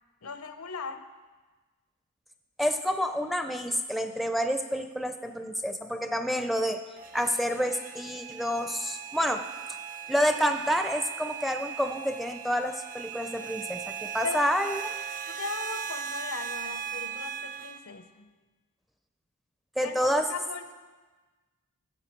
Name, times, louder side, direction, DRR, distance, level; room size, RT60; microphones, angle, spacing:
voice 1, 0.2-1.0 14.2-14.5 15.3-18.3 19.8-20.7, left 4 dB, 80° left, 9 dB, 0.8 m, -38 dB
voice 2, 2.6-6.8 7.1-9.4 10.1-15.0 19.8-20.3, equal, ahead, 6 dB, 0.4 m, -28 dB
sound 1, 7.0-17.8, right 8 dB, 40° right, 0.6 m, -38 dB
13.5 x 8.0 x 4.5 m, 1.3 s
head